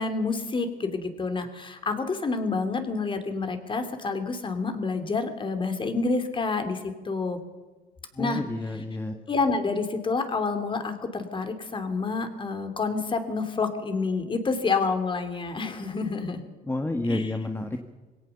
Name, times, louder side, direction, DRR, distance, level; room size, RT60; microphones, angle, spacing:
voice 1, 0.0-7.4 8.2-8.4 9.3-16.4 17.1-17.3, left 4 dB, 30° left, 8 dB, 2.9 m, -28 dB
voice 2, 8.1-9.2 16.6-17.8, left 2 dB, 15° left, 5 dB, 1.4 m, -30 dB
21.5 x 17.5 x 6.9 m, 1.2 s
cardioid pair, 110°, 17 cm